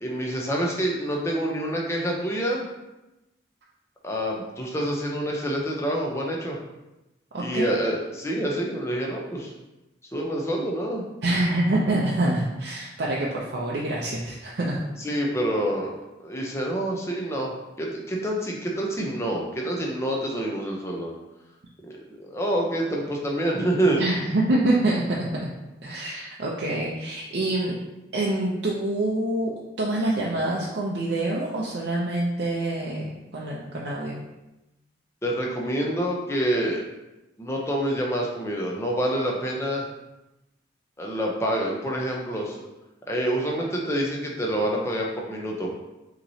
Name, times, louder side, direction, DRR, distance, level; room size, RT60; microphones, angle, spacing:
voice 1, 0.0-2.6 4.0-6.6 7.4-9.5 10.1-11.0 15.0-21.1 21.8-24.3 35.2-36.8 37.4-39.8 41.0-42.6 43.1-45.7, right 1 dB, 15° left, -2 dB, 0.6 m, -27 dB
voice 2, 7.3-7.7 11.2-14.8 24.0-25.5 25.8-27.8 28.1-34.2, right 1 dB, 70° right, -4 dB, 0.6 m, -26 dB
5.8 x 3.0 x 2.8 m, 0.98 s
head